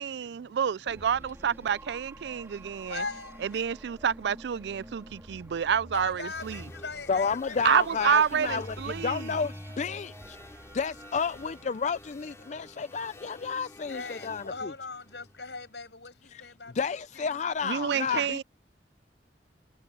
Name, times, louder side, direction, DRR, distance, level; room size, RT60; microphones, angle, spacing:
voice 1, 0.0-3.0 3.4-6.6 7.6-9.3 17.6-18.4, right 8 dB, 70° right, 0.4 m, -28 dB
sound 1, 0.9-13.6, right 1 dB, 15° right, 3.9 m, -50 dB
voice 2, 2.8-3.7 5.9-7.8 13.9-16.8 17.1-17.6, left 4 dB, 75° left, 7.6 m, -40 dB
sound 2, 6.2-15.7, left 1 dB, 15° left, 2.6 m, -48 dB
voice 3, 7.1-10.4 10.7-14.7 16.3-16.4 16.7-18.4, left 5 dB, 40° left, 0.4 m, -31 dB
head